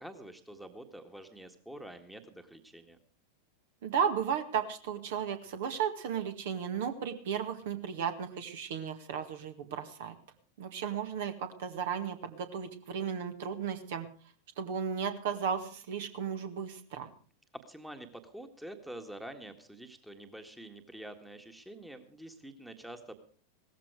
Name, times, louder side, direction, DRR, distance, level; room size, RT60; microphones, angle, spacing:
voice 1, 0.0-3.0 17.5-23.1, right 1 dB, 5° right, 7 dB, 1.7 m, -47 dB
voice 2, 3.8-10.2 10.6-14.1 14.6-17.1, right 7 dB, 55° right, 8 dB, 1.9 m, -34 dB
17.5 x 14.5 x 4.9 m, 0.41 s
figure-of-eight pair, 90°, 0 cm